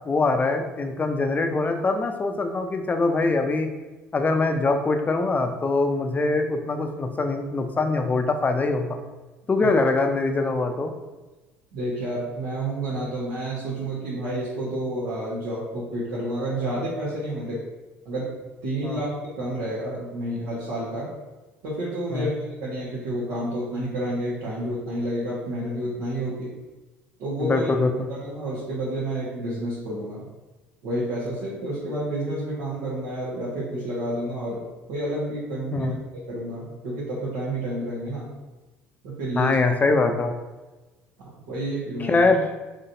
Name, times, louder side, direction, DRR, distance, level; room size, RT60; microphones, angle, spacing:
voice 1, 0.0-3.7 4.1-9.0 9.5-10.9 18.8-19.0 22.1-22.3 27.4-28.1 35.7-36.0 39.3-40.3 42.0-42.4, left 3 dB, 25° left, 6 dB, 0.5 m, -23 dB
voice 2, 11.7-17.6 18.0-18.4 18.6-19.1 19.4-21.1 21.6-26.5 27.2-27.7 28.1-30.3 30.8-34.6 34.9-35.9 36.3-38.3 39.0-39.6 41.5-42.2, right 1 dB, 70° right, -8 dB, 1.2 m, -29 dB
3.9 x 3.2 x 2.7 m, 1.2 s
hypercardioid pair, 60°, 6 cm